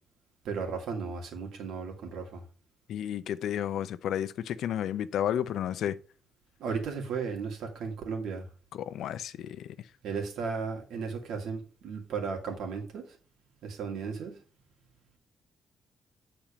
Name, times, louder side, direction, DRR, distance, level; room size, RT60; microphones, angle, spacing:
voice 1, 0.4-2.4 6.6-8.4 10.0-13.0 13.6-14.4, right 5 dB, 80° right, 2.2 m, -35 dB
voice 2, 2.9-6.0 8.8-9.7, left 10 dB, 75° left, 0.5 m, -32 dB
8.9 x 4.4 x 5.0 m
cardioid pair, 145°, 0 cm